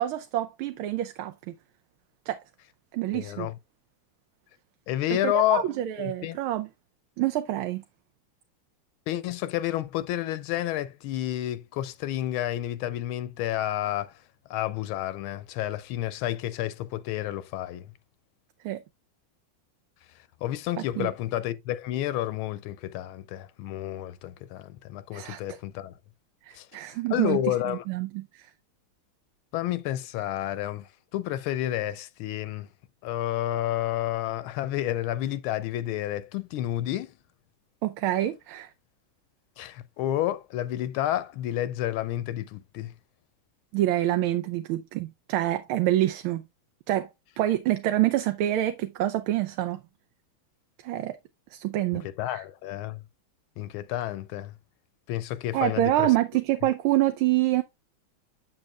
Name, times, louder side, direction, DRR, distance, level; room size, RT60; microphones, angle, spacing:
voice 1, 0.0-1.5 2.3-2.4 2.9-3.5 5.2-6.7 7.2-7.8 18.6-18.8 21.0-21.1 25.1-25.6 26.4-28.5 37.8-38.7 43.7-46.4 46.9-47.1 47.4-49.8 50.8-51.2 51.5-52.4 55.5-57.6, right 14 dB, 90° right, 1.5 m, -27 dB
voice 2, 3.1-3.6 4.9-5.7 6.0-6.4 9.1-14.2 14.5-17.9 20.4-25.9 26.5-26.7 27.1-27.8 29.5-32.7 33.0-37.1 39.6-42.9 52.0-53.0 53.6-54.6 55.1-56.1, left 13 dB, 85° left, 1.4 m, -30 dB
7.7 x 7.3 x 2.3 m
omnidirectional pair, 2.3 m